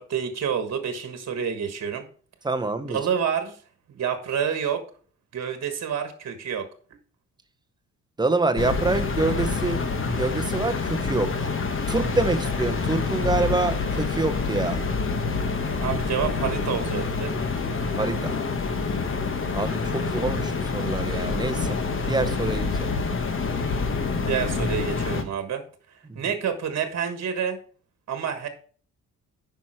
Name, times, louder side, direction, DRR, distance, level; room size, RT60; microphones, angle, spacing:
voice 1, 0.0-2.0 2.9-3.6 3.9-4.8 5.3-6.7 15.8-17.3 24.3-25.6 26.1-27.6 28.1-28.5, right 7 dB, 55° right, 1.5 m, -28 dB
voice 2, 2.4-3.0 8.2-11.5 11.9-14.8 18.0-18.3 19.5-21.8 22.1-22.9 26.1-26.2, right 3 dB, 15° right, 0.8 m, -26 dB
sound 1, 8.6-25.2, left 4 dB, 40° left, 1.2 m, -27 dB
9.2 x 5.8 x 4.5 m
cardioid pair, 125°, 31 cm